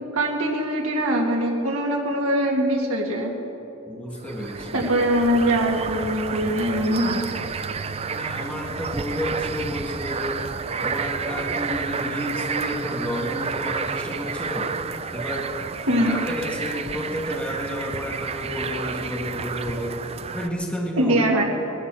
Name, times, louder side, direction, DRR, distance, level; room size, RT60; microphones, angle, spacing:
voice 1, 0.1-3.3 4.7-7.2 15.9-16.2 21.0-21.4, right 1 dB, 85° right, -1 dB, 2.2 m, -22 dB
voice 2, 3.9-4.9 8.1-10.5 10.8-14.7 15.1-15.5 15.9-20.0 20.3-21.1, equal, 5° left, -2 dB, 1.7 m, -31 dB
sound 1, 4.2-20.5, right 5 dB, 30° right, 0.5 m, -30 dB
19.5 x 11.5 x 6.2 m, 3.0 s
head